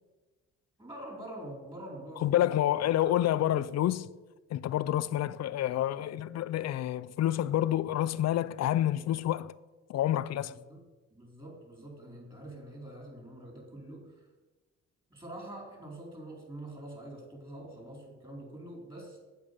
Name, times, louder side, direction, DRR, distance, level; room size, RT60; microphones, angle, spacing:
voice 1, 0.8-2.4 10.4-10.8 11.1-14.3 15.1-19.2, right 1 dB, 15° right, 4.1 m, -45 dB
voice 2, 2.2-4.1 4.5-9.5 9.9-10.5, left 12 dB, 60° left, 0.5 m, -28 dB
8.7 x 7.7 x 6.8 m
cardioid pair, 90°, 30 cm